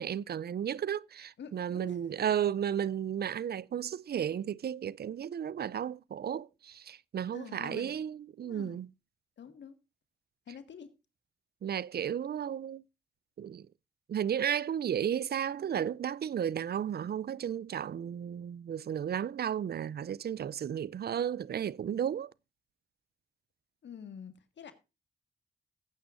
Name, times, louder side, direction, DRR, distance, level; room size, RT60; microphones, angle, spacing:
voice 1, 0.0-8.9 11.6-12.8 13.4-13.7 14.1-22.3, right 9 dB, 60° right, 0.5 m, -33 dB
voice 2, 1.4-2.0 7.3-8.0 8.4-8.8 9.4-9.8 10.5-10.9 23.8-24.7, left 7 dB, 80° left, 1.8 m, -47 dB
18.0 x 9.5 x 2.6 m
cardioid pair, 50°, 18 cm